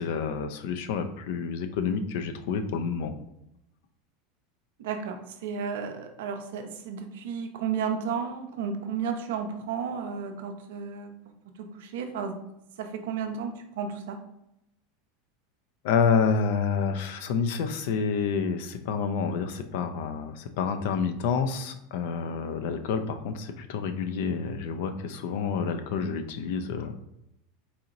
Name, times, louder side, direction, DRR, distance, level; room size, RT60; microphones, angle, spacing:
voice 1, 0.0-3.1 15.8-27.1, left 6 dB, 70° left, 8 dB, 0.4 m, -28 dB
voice 2, 4.8-11.1 11.7-12.3 12.8-14.2, right 6 dB, 80° right, 5 dB, 0.5 m, -33 dB
4.1 x 2.9 x 2.5 m, 0.82 s
hypercardioid pair, 110°, 0 cm